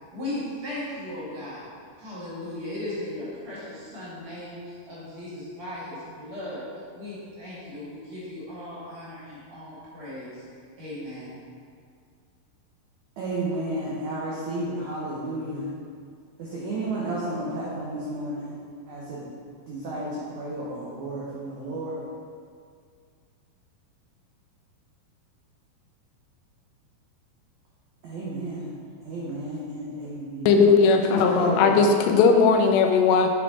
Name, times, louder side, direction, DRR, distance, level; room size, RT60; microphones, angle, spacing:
voice 1, 0.1-1.7 2.0-6.7 6.9-10.4 10.8-11.4, left 1 dB, 50° right, -9 dB, 2.5 m, -37 dB
voice 2, 13.2-15.7 16.4-18.6 18.9-19.2 19.7-22.0 28.0-28.7 29.0-30.6 31.1-31.8, right 2 dB, 85° right, -6 dB, 1.6 m, -32 dB
voice 3, 30.5-33.3, left 5 dB, 90° left, 4 dB, 2.8 m, -18 dB
8.2 x 4.5 x 4.2 m, 2.2 s
omnidirectional pair, 4.8 m